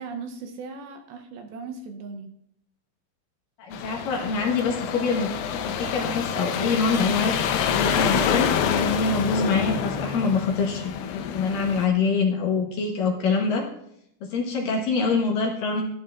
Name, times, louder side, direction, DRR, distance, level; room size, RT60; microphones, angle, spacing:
voice 1, 0.0-2.3 10.7-11.5, right 4 dB, 75° right, 5 dB, 2.4 m, -39 dB
voice 2, 3.6-5.3 5.6-13.7 14.3-15.8, left 4 dB, 70° left, 0 dB, 2.4 m, -25 dB
sound 1, 3.7-11.9, left 8 dB, 85° left, 2.9 m, -27 dB
12.0 x 11.5 x 2.4 m, 0.75 s
omnidirectional pair, 4.8 m